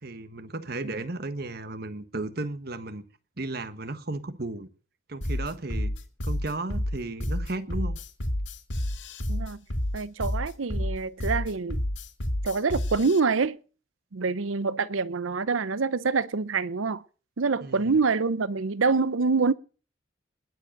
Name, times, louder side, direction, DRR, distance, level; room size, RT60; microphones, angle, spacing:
voice 1, 0.0-3.0 3.4-4.7 5.1-5.9 6.2-8.0 17.6-18.0, right 2 dB, 50° right, 1.3 m, -34 dB
sound 1, 5.2-13.2, left 1 dB, 70° left, 2.1 m, -30 dB
voice 2, 9.3-9.6 9.9-11.8 12.4-13.6 14.1-17.0 17.4-19.5, right 4 dB, 85° right, 0.7 m, -26 dB
20.0 x 7.8 x 6.6 m
head